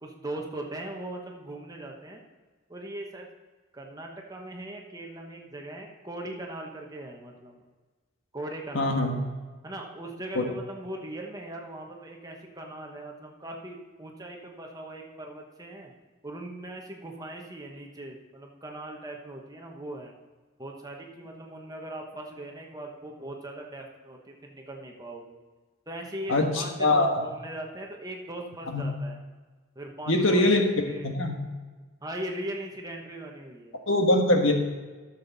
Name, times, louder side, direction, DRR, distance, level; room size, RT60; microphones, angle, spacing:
voice 1, 0.0-2.2 2.7-3.3 3.7-7.6 8.3-9.1 9.6-15.9 16.2-20.2 20.6-25.4 25.9-29.2 29.7-30.4 30.8-31.1 32.0-33.8, right 1 dB, 15° right, 1 dB, 1.1 m, -39 dB
voice 2, 8.7-9.1 10.3-10.4 26.3-27.2 28.7-28.8 30.1-30.6 31.0-31.4 33.9-34.5, left 2 dB, 75° left, 3 dB, 1.4 m, -23 dB
12.5 x 7.2 x 4.0 m, 1.3 s
head